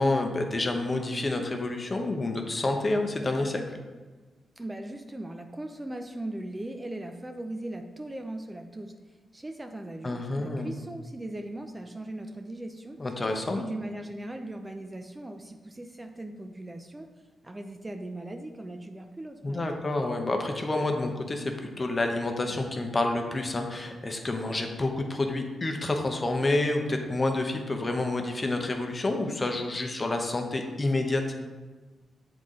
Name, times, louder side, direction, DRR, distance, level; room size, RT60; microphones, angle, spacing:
voice 1, 0.0-3.6 10.0-10.7 13.0-13.6 19.4-31.2, left 2 dB, 35° left, 3 dB, 0.9 m, -28 dB
voice 2, 4.6-8.9 9.3-13.0 13.6-17.1 17.4-19.9, right 1 dB, 20° right, 5 dB, 0.5 m, -39 dB
7.5 x 3.9 x 3.7 m, 1.3 s
cardioid pair, 60°, 0 cm